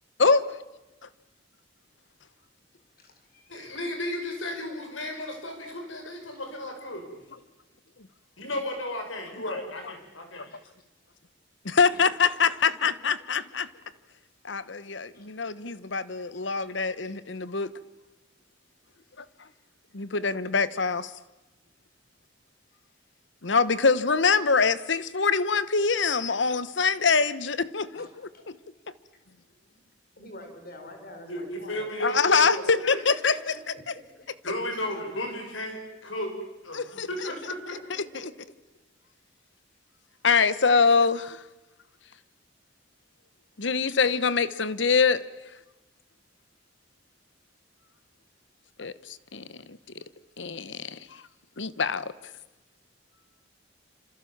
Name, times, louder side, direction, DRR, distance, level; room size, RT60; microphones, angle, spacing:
voice 1, 3.0-3.8 6.2-6.3 10.5-10.6 11.8-12.0 12.8-12.9 15.1-15.3 16.3-16.8 27.9-28.5 30.2-31.9 32.9-34.0 37.3-37.4 37.9-38.3, left 1 dB, 50° left, 6 dB, 5.1 m, -47 dB
voice 2, 3.5-7.2 8.4-10.5 31.2-33.0 34.4-36.4 36.6-37.5, left 1 dB, 90° left, 4 dB, 6.2 m, -34 dB
voice 3, 11.6-13.7 14.4-17.7 19.2-19.3 19.9-21.1 23.4-28.1 28.5-28.6 32.0-33.3 36.7-37.1 40.2-41.4 43.6-45.2 48.8-49.8 50.4-51.2 51.6-52.1, left 5 dB, 65° left, 16 dB, 1.0 m, -24 dB
27.0 x 26.5 x 7.3 m, 1.0 s
head